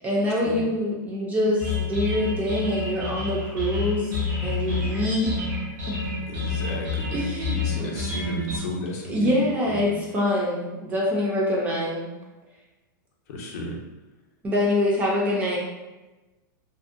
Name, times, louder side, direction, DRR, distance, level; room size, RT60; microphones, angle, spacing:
voice 1, 0.0-4.1 4.4-5.3 5.9-6.0 7.1-7.9 9.1-12.1 14.4-15.6, left 1 dB, 15° right, -4 dB, 0.3 m, -25 dB
sound 1, 1.6-8.6, left 4 dB, 75° right, 1.0 m, -29 dB
voice 2, 6.3-7.1 7.5-9.9 13.3-13.8, equal, 50° left, -1 dB, 0.5 m, -33 dB
2.6 x 2.0 x 2.4 m, 1.1 s
supercardioid pair, 160°, 11 cm